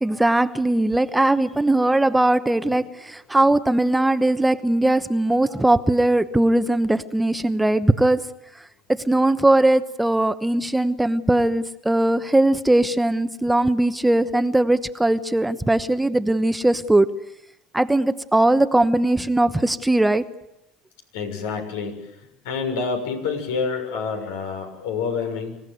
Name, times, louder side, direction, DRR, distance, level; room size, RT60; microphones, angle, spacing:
voice 1, 0.0-8.2 8.9-17.1 17.7-20.2, right 1 dB, 10° right, 11 dB, 1.0 m, -20 dB
voice 2, 21.1-22.1 22.4-25.6, left 5 dB, 85° left, 5 dB, 6.6 m, -27 dB
26.5 x 16.0 x 9.5 m, 0.86 s
supercardioid pair, 100°, 0 cm